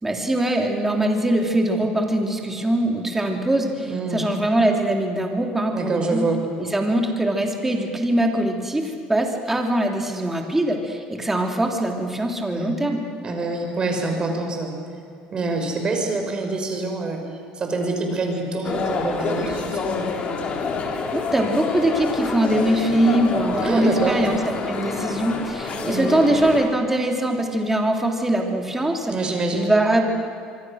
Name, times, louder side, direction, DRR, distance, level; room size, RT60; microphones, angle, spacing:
voice 1, 0.0-6.3 6.6-13.0 21.1-30.1, right 1 dB, 10° right, 2 dB, 3.2 m, -22 dB
voice 2, 3.9-4.2 5.7-6.4 12.5-12.8 13.2-14.7 15.3-17.2 17.5-20.1 23.6-24.3 25.7-26.4 29.1-29.7, right 3 dB, 30° right, 3 dB, 5.3 m, -26 dB
sound 1, 18.6-26.7, left 4 dB, 45° left, 3.5 m, -27 dB
25.0 x 24.0 x 6.5 m, 2.3 s
cardioid pair, 115°, 3 cm